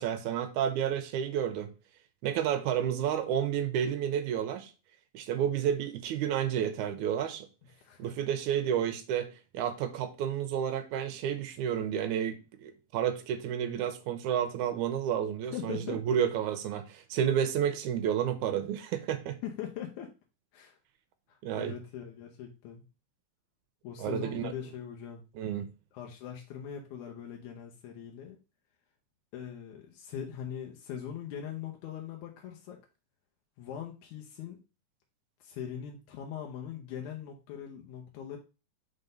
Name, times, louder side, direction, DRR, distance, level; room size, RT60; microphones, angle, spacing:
voice 1, 0.0-1.7 2.2-4.7 5.1-7.5 8.0-19.4 21.4-21.8 24.0-24.5 25.4-25.7, right 9 dB, 80° right, 2.0 m, -31 dB
voice 2, 7.8-8.1 15.4-16.2 19.4-20.1 20.5-20.8 21.3-22.9 23.8-25.2 25.9-28.4 29.3-32.8 33.6-34.6 35.4-38.4, left 9 dB, 75° left, 2.1 m, -41 dB
5.4 x 3.9 x 5.1 m
omnidirectional pair, 3.6 m